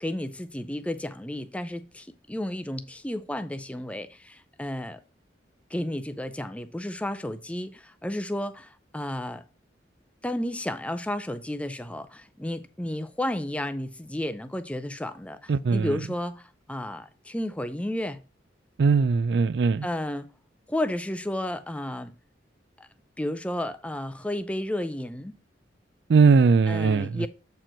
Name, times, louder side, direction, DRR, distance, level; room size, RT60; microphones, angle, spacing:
voice 1, 0.0-5.0 5.7-9.4 10.2-18.2 19.8-20.3 20.7-22.1 22.8-22.9 23.2-25.3 26.7-27.3, left 1 dB, 5° left, 0.5 m, -32 dB
voice 2, 15.5-15.9 18.8-19.8 26.1-27.1, right 5 dB, 60° right, 0.4 m, -20 dB
7.6 x 4.5 x 5.1 m
head